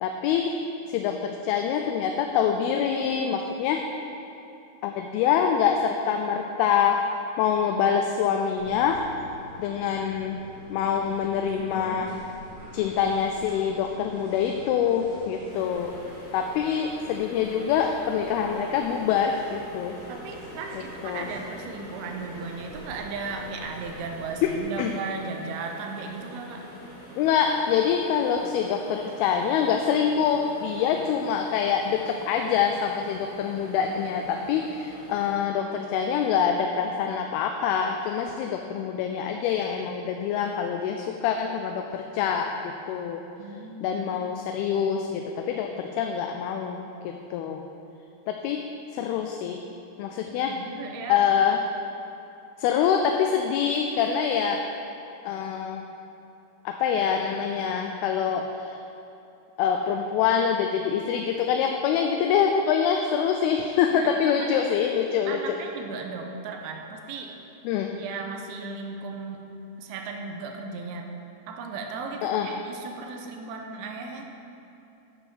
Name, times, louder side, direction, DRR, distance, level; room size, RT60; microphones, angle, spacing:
voice 1, 0.0-3.9 4.8-7.1 7.4-9.1 9.6-10.4 10.7-12.2 12.7-16.1 16.3-20.0 20.7-21.4 24.4-25.0 27.2-43.3 43.8-47.7 48.3-49.7 50.0-50.6 51.1-51.7 52.6-54.7 55.2-55.9 56.7-58.8 59.6-65.6 67.6-68.0 72.2-72.5, left 7 dB, 85° left, 4 dB, 2.4 m, -25 dB
sound 1, 8.6-24.6, right 1 dB, 55° right, 3.0 m, -46 dB
sound 2, 15.5-35.3, equal, 10° left, 1.4 m, -46 dB
voice 2, 20.1-26.7 43.4-44.0 50.3-51.2 63.9-64.1 64.4-64.5 65.3-67.3 68.0-69.4 69.8-71.1 71.5-74.3, right 4 dB, 80° right, 3 dB, 2.7 m, -36 dB
11.0 x 5.5 x 6.1 m, 2.7 s
omnidirectional pair, 4.6 m